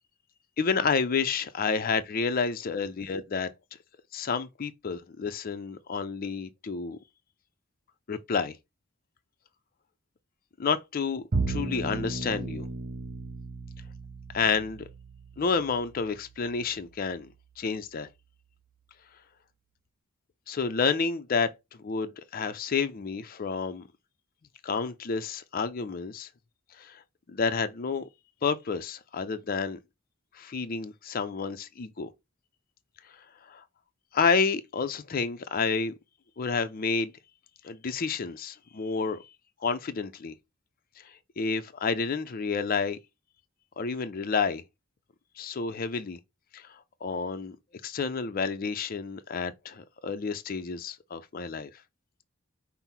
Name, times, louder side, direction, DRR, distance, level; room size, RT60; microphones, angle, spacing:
voice 1, 0.6-3.5 4.1-7.0 8.1-8.5 10.6-12.7 14.3-14.9 15.4-17.3 17.6-18.1 20.5-21.5 21.8-23.8 24.6-26.3 26.8-27.0 27.3-28.0 28.4-29.8 30.4-32.1 33.5-33.6 34.1-35.9 36.4-37.1 37.6-39.2 39.6-40.3 41.4-43.0 43.8-44.6 45.4-46.2 46.5-46.7 47.0-47.6 47.8-51.7, left 5 dB, 45° left, 0.5 m, -29 dB
Bowed string instrument, 11.3-17.8, right 3 dB, 45° right, 0.6 m, -36 dB
5.5 x 2.0 x 4.3 m
head